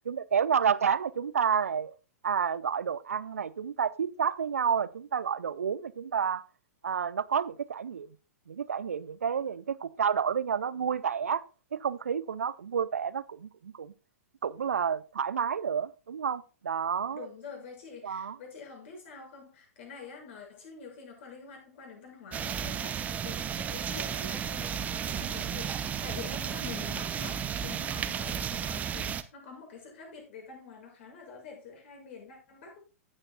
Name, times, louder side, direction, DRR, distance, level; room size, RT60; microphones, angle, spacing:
voice 1, 0.1-1.9 2.2-6.4 6.8-8.1 8.5-11.4 11.7-13.9 14.4-17.3 18.0-18.4, right 7 dB, 65° right, 0.6 m, -30 dB
voice 2, 17.1-32.8, left 5 dB, 50° left, 6.2 m, -46 dB
sound 1, 22.3-29.2, right 8 dB, 20° right, 0.8 m, -33 dB
15.5 x 8.9 x 2.2 m
figure-of-eight pair, 105°, 8 cm